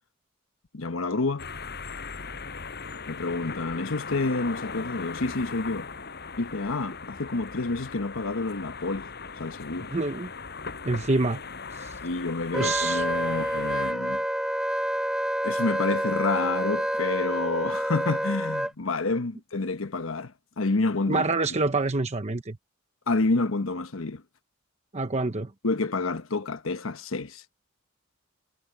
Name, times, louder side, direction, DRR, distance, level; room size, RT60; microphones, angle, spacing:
voice 1, 0.7-1.5 3.1-5.9 6.4-9.1 9.4-9.9 12.0-14.2 15.4-21.2 23.1-24.2 25.6-27.4, left 3 dB, 85° left, 1.1 m, -29 dB
sound 1, 1.4-13.9, left 4 dB, 55° left, 7.0 m, -39 dB
voice 2, 9.9-10.3 10.8-11.4 11.7-12.0 12.5-13.0 21.1-22.6 24.9-25.5, right 3 dB, 35° right, 1.0 m, -27 dB
Wind instrument woodwind instrument, 12.5-18.7, equal, 5° right, 0.6 m, -28 dB
head